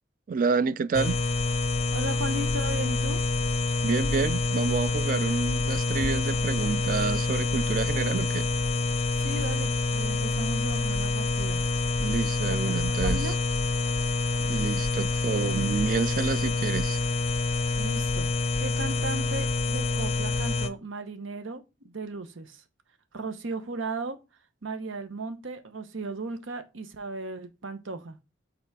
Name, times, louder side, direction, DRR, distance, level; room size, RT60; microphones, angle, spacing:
voice 1, 0.3-1.2 3.8-8.5 12.0-13.3 14.4-17.0, right 5 dB, 45° right, 0.3 m, -28 dB
sound 1, 0.9-20.7, left 3 dB, 30° left, 0.5 m, -27 dB
voice 2, 1.9-3.2 9.2-11.6 12.8-13.4 17.8-18.3 18.6-22.6 23.1-24.2 24.6-28.2, right 2 dB, 90° right, 1.0 m, -36 dB
5.7 x 4.0 x 4.6 m
head